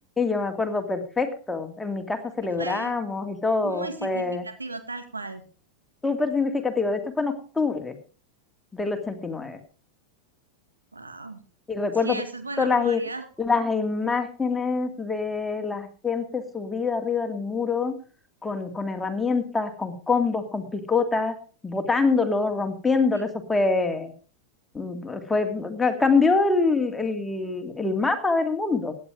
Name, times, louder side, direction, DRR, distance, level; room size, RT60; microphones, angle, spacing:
voice 1, 0.2-4.5 6.0-8.0 8.7-9.6 11.7-12.2 12.6-13.0 13.4-17.9 18.4-21.3 21.6-24.1 24.7-28.9, left 4 dB, 10° left, 6 dB, 2.3 m, -25 dB
voice 2, 2.5-3.0 3.6-5.4 10.9-11.4 12.0-13.3 23.1-23.3, right 3 dB, 80° right, 9 dB, 1.9 m, -36 dB
16.5 x 10.0 x 4.9 m, 0.37 s
figure-of-eight pair, 90°, 0 cm